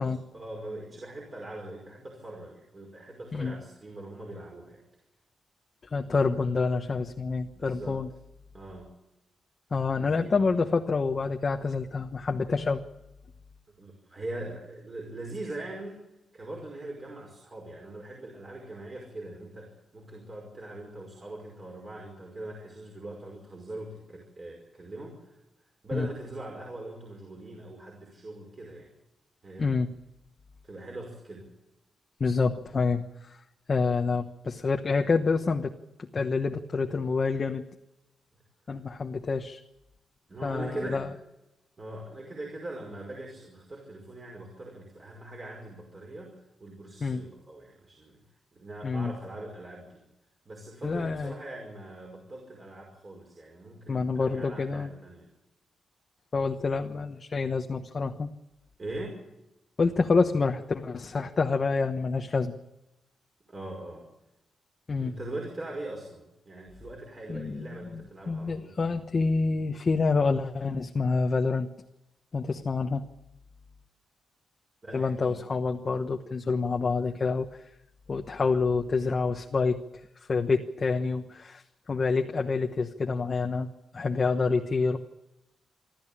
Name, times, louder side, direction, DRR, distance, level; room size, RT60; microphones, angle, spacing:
voice 1, 0.3-4.8 7.5-8.0 8.5-8.9 10.0-10.4 13.8-16.0 16.3-25.4 25.8-28.9 29.4-29.7 30.6-31.5 40.3-41.0 41.8-48.2 48.5-50.0 50.5-55.3 58.8-59.3 63.5-64.1 65.0-68.8 74.8-75.4, right 2 dB, 30° right, -1 dB, 5.3 m, -41 dB
voice 2, 3.3-3.6 5.9-8.1 9.7-12.8 25.9-26.1 29.6-29.9 32.2-33.4 33.7-35.7 36.0-37.7 38.7-39.6 40.4-41.1 47.0-47.2 48.8-49.1 50.8-51.3 53.9-54.9 56.3-58.3 59.8-62.5 64.9-65.1 67.3-68.0 68.3-71.7 72.3-73.1 74.9-77.6 78.1-79.8 80.2-85.0, left 4 dB, 35° left, 4 dB, 1.1 m, -27 dB
26.0 x 13.0 x 8.8 m, 0.93 s
wide cardioid pair, 155°, 0 cm